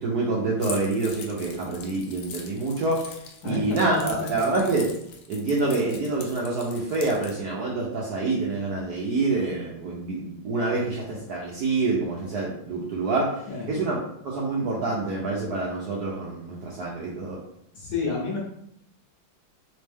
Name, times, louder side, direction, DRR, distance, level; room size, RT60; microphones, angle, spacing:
voice 1, 0.0-3.2 3.4-4.9 5.3-17.4, right 3 dB, 70° right, -4 dB, 0.9 m, -27 dB
Keys jangling, 0.6-7.3, left 6 dB, 75° left, 0.9 m, -42 dB
voice 2, 3.4-4.5 13.5-13.7 17.7-18.4, left 3 dB, 60° left, -3 dB, 1.3 m, -30 dB
3.4 x 3.1 x 3.3 m, 0.74 s
omnidirectional pair, 2.3 m